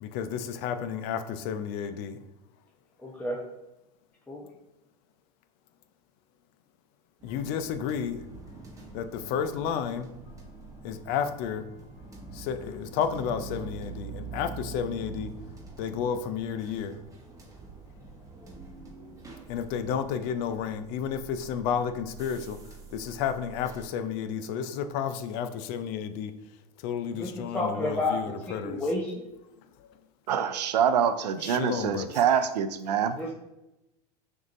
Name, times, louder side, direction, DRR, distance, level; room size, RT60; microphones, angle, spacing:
voice 1, 0.0-2.2 7.2-8.3 8.9-10.1 10.8-11.7 12.3-15.3 15.8-17.0 19.5-22.6 22.9-26.3 26.8-28.8 29.8-29.9 31.4-32.1, left 7 dB, 50° left, 10 dB, 0.5 m, -31 dB
voice 2, 3.0-3.4 4.3-4.4 27.2-28.2 28.5-29.3 33.2-33.3, left 2 dB, 10° left, -4 dB, 0.8 m, -30 dB
sound 1, 7.2-23.9, right 4 dB, 15° right, 1.0 m, -45 dB
voice 3, 30.3-33.2, right 8 dB, 80° right, 10 dB, 0.4 m, -25 dB
6.1 x 2.6 x 2.6 m, 0.93 s
hypercardioid pair, 90°, 21 cm